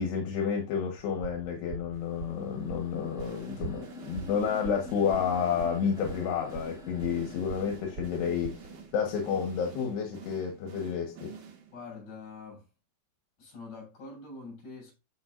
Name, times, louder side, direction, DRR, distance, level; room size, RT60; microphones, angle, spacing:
voice 1, 0.0-11.3, left 7 dB, 80° left, 3.6 m, -30 dB
sound 1, 1.0-8.7, right 6 dB, 85° right, 1.8 m, -42 dB
sound 2, 1.9-9.9, left 3 dB, ahead, 2.2 m, -49 dB
sound 3, 3.2-12.0, right 7 dB, 60° right, 2.6 m, -48 dB
voice 2, 11.7-12.7 13.4-14.9, left 3 dB, 50° left, 8.0 m, -44 dB
14.5 x 5.8 x 2.6 m
omnidirectional pair, 4.7 m